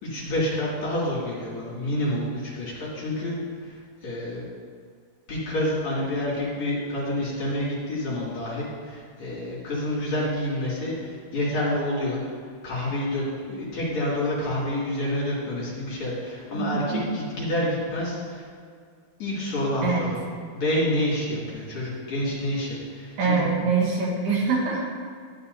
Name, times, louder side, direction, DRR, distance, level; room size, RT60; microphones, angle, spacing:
voice 1, 0.0-3.4 3.6-4.4 5.3-12.2 12.6-18.4 19.2-20.2 20.5-23.5, left 1 dB, 45° left, -8 dB, 3.2 m, -28 dB
voice 2, 23.2-24.8, right 4 dB, 85° right, -4 dB, 3.9 m, -24 dB
12.5 x 10.0 x 2.7 m, 2.1 s
omnidirectional pair, 4.7 m